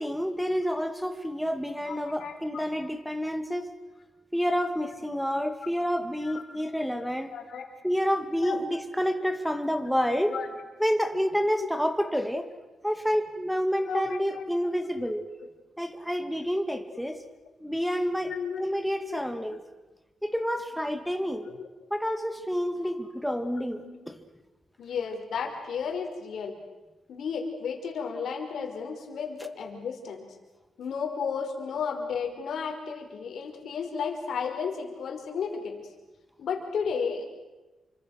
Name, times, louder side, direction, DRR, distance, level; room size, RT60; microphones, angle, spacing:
voice 1, 0.0-3.7 4.3-7.3 7.8-10.3 10.8-12.5 12.8-15.2 15.8-17.2 17.6-18.3 18.6-19.6 20.2-21.5 21.9-24.1, equal, ahead, 7 dB, 2.4 m, -29 dB
voice 2, 1.8-2.6 6.2-6.4 7.3-7.7 8.4-8.6 10.3-10.5 11.6-11.7 13.8-14.4 15.0-15.1 18.2-18.6 19.0-19.2 21.5-21.7 22.8-22.9 23.7-24.1 24.8-26.6 27.1-30.4 30.8-35.8 36.4-37.2, left 6 dB, 75° left, 4 dB, 5.1 m, -33 dB
29.0 x 25.0 x 6.6 m, 1.1 s
cardioid pair, 115°, 0 cm